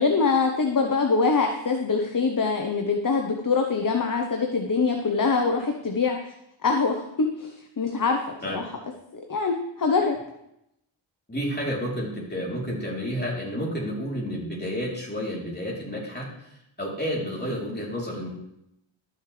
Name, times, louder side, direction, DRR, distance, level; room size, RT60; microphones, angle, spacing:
voice 1, 0.0-6.2 6.6-8.2 8.5-8.6 9.1-10.2, left 4 dB, 40° left, 3 dB, 1.0 m, -24 dB
voice 2, 11.3-16.5 16.8-18.3, equal, 20° left, -4 dB, 3.5 m, -30 dB
12.5 x 6.5 x 3.3 m, 0.82 s
cardioid pair, 55°, 50 cm